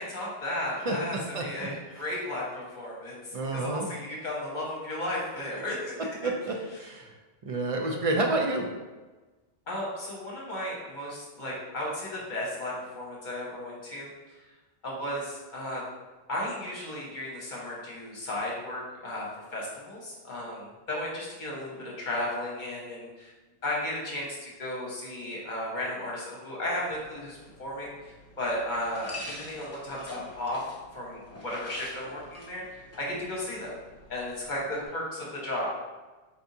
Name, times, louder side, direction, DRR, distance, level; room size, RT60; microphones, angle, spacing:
voice 1, 0.0-5.9 6.2-6.3 9.7-14.5 14.8-15.8 16.3-23.3 23.6-30.6 30.9-33.7 34.1-35.8, left 1 dB, 45° left, -4 dB, 1.2 m, -34 dB
voice 2, 0.8-1.7 3.3-3.9 6.2-7.1 7.5-8.7, right 2 dB, 50° right, 1 dB, 0.4 m, -29 dB
sound 1, 26.9-34.9, left 1 dB, 20° left, 0.4 m, -47 dB
4.2 x 3.4 x 2.7 m, 1.2 s
omnidirectional pair, 1.1 m